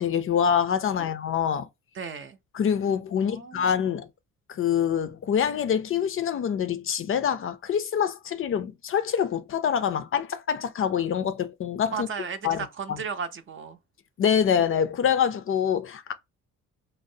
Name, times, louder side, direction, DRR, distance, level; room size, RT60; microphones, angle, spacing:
voice 1, 0.0-1.7 2.5-4.1 4.5-12.1 12.4-12.6 14.2-16.1, left 8 dB, 45° left, 0.4 m, -25 dB
voice 2, 1.9-2.4 3.2-3.8 11.9-13.8, right 6 dB, 40° right, 0.5 m, -35 dB
3.9 x 2.0 x 2.6 m
cardioid pair, 90°, 30 cm